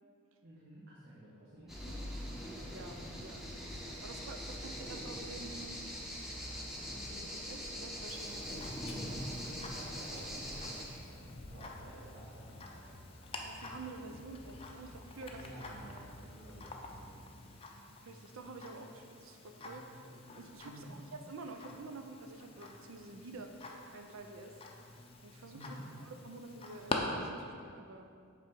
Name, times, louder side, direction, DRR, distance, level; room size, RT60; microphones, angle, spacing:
voice 1, 0.4-2.0 4.0-4.1 9.4-12.9 15.4-17.4 20.6-21.0 25.5-25.9, equal, 50° right, -8 dB, 1.1 m, -52 dB
sound 1, 1.7-10.9, equal, ahead, 0.8 m, -42 dB
voice 2, 2.7-5.8 6.9-8.7 13.4-15.6 17.7-20.0 20.3-23.5 23.9-24.6 25.2-25.7 26.0-28.0, right 3 dB, 75° right, 5 dB, 0.6 m, -49 dB
Tick-tock, 8.1-27.0, left 3 dB, 25° left, 0.5 m, -48 dB
sound 2, 10.9-17.3, left 1 dB, 65° left, 0.7 m, -54 dB
7.4 x 3.4 x 5.3 m, 2.3 s
head